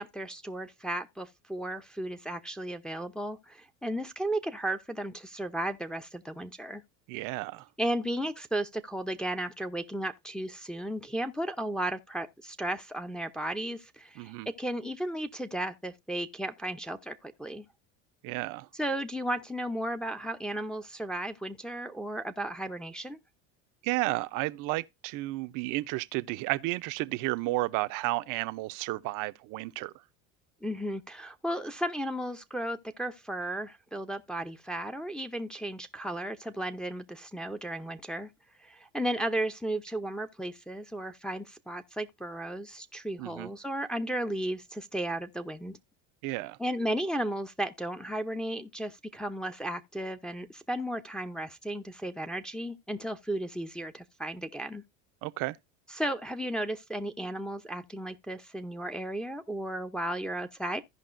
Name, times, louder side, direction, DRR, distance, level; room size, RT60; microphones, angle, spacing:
voice 1, 0.0-6.8 7.8-17.7 18.8-23.2 30.6-38.3 38.6-45.8 46.6-54.8 55.9-60.8, right 1 dB, ahead, 0.6 m, -34 dB
voice 2, 7.1-7.7 14.2-14.5 18.2-18.7 23.8-29.9 43.2-43.5 46.2-46.6 55.2-55.6, right 20 dB, 60° right, 0.6 m, -32 dB
15.5 x 5.3 x 2.5 m
supercardioid pair, 105°, 37 cm